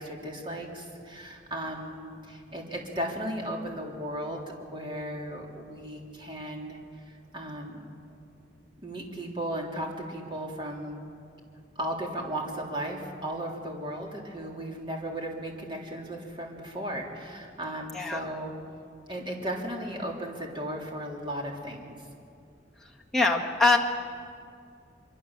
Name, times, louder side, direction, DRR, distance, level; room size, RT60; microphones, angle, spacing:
voice 1, 0.0-8.0 8.8-11.0 11.8-18.5 19.1-22.0, right 1 dB, 30° right, 0 dB, 3.4 m, -36 dB
voice 2, 23.1-23.8, left 3 dB, ahead, -2 dB, 1.6 m, -23 dB
24.5 x 24.0 x 7.4 m, 2.4 s
head